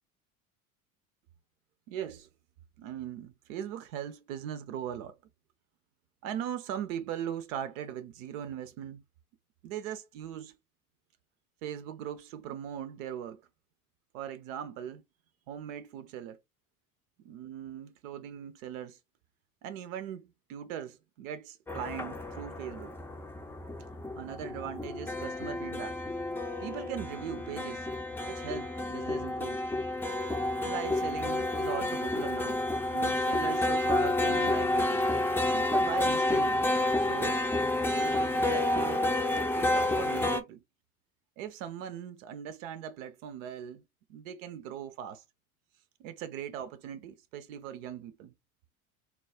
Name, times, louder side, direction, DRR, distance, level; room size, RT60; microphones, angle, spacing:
voice 1, 1.9-2.3 2.8-5.2 6.2-9.0 9.6-10.6 11.6-13.4 14.1-15.0 15.5-16.4 17.2-19.0 19.6-23.0 24.2-26.0 26.6-27.9 28.2-29.6 30.6-35.1 35.5-36.6 37.0-37.4 37.9-39.1 39.5-40.6 41.4-43.8 44.1-45.2 46.0-48.3, right 9 dB, 65° right, 0.7 m, -40 dB
sound 1, 21.7-40.4, left 2 dB, 5° left, 0.6 m, -30 dB
4.2 x 2.3 x 4.3 m
figure-of-eight pair, 70°, 44 cm